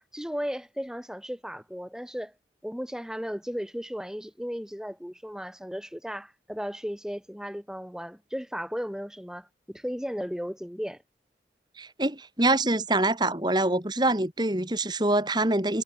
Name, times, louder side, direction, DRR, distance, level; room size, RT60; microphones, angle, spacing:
voice 1, 0.0-2.3 2.6-11.0, equal, 5° right, 2.5 m, -35 dB
voice 2, 11.8-15.8, right 2 dB, 25° right, 3.0 m, -25 dB
head